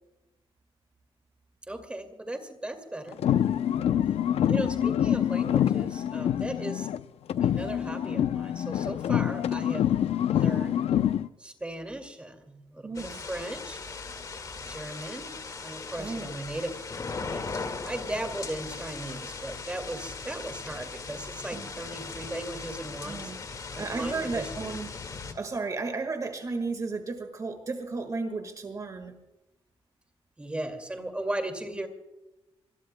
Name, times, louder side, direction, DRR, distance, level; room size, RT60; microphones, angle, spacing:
voice 1, 1.7-3.2 4.1-4.2 4.5-6.9 7.4-10.8 11.4-13.8 14.5-15.3 15.6-16.7 17.1-23.3 23.7-24.5 30.4-31.9, right 1 dB, 10° right, 6 dB, 2.2 m, -37 dB
sound 1, 3.1-7.0 7.3-11.3, left 10 dB, 85° left, 0.5 m, -26 dB
voice 2, 12.8-13.2 16.0-16.4 21.5-21.7 23.0-23.4 23.8-24.9 25.3-29.1, right 3 dB, 35° right, 6 dB, 1.7 m, -34 dB
sound 2, 12.9-25.3, left 4 dB, 35° left, 1.9 m, -38 dB
26.0 x 21.0 x 2.2 m, 0.97 s
wide cardioid pair, 180°, 10 cm